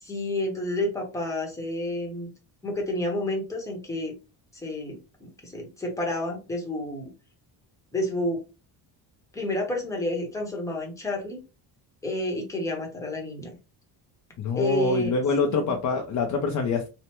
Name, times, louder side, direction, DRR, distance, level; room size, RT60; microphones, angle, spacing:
voice 1, 0.0-2.3 2.6-4.1 4.6-5.0 5.4-7.1 7.9-8.4 9.3-11.4 12.0-13.6 14.5-15.1 15.5-15.7, left 1 dB, 5° left, 0 dB, 0.8 m, -29 dB
voice 2, 14.4-16.9, left 4 dB, 45° left, 3 dB, 0.5 m, -25 dB
3.2 x 2.0 x 2.9 m, 0.30 s
cardioid pair, 145°, 44 cm